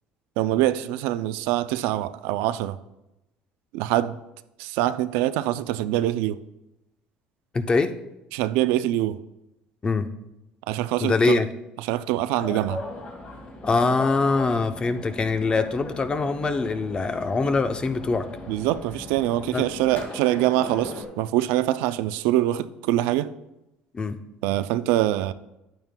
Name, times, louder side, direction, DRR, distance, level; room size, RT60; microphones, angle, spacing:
voice 1, 0.4-2.8 3.7-4.2 4.6-6.4 8.3-9.2 10.7-11.4 11.8-12.8 18.5-23.3 24.4-25.3, right 14 dB, 85° right, 0.4 m, -24 dB
voice 2, 7.5-7.9 9.8-10.1 11.0-11.5 13.6-18.3 19.5-19.7 23.9-24.2, left 3 dB, 25° left, 0.7 m, -23 dB
sound 1, 12.4-21.0, left 2 dB, 45° left, 2.0 m, -38 dB
11.0 x 8.9 x 2.2 m
supercardioid pair, 100°, 3 cm